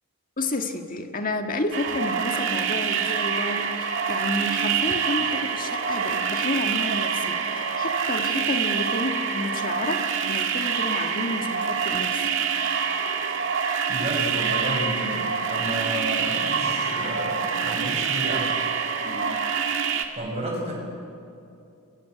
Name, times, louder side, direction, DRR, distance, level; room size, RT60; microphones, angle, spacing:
voice 1, 0.4-12.3 19.0-19.5, left 2 dB, 40° left, 5 dB, 1.9 m, -30 dB
sound 1, 1.7-20.0, right 6 dB, 55° right, 2.1 m, -26 dB
voice 2, 13.9-18.5 20.1-20.7, right 1 dB, 30° right, -2 dB, 6.6 m, -31 dB
28.5 x 23.5 x 8.1 m, 2.6 s
head